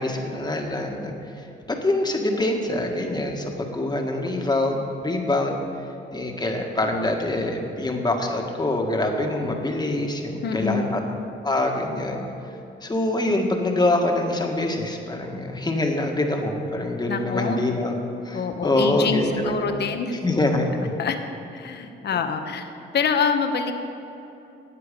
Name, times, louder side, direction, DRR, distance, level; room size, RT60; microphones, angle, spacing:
voice 1, 0.0-5.6 6.1-11.0 11.4-12.2 12.8-17.9 18.2-19.8 20.2-20.9, left 2 dB, 20° left, 2 dB, 1.8 m, -25 dB
voice 2, 10.4-10.9 17.1-17.6 18.3-20.1 21.0-21.2 21.5-23.8, left 6 dB, 55° left, 6 dB, 1.2 m, -26 dB
15.0 x 8.9 x 5.3 m, 2.9 s
cardioid pair, 90°, 20 cm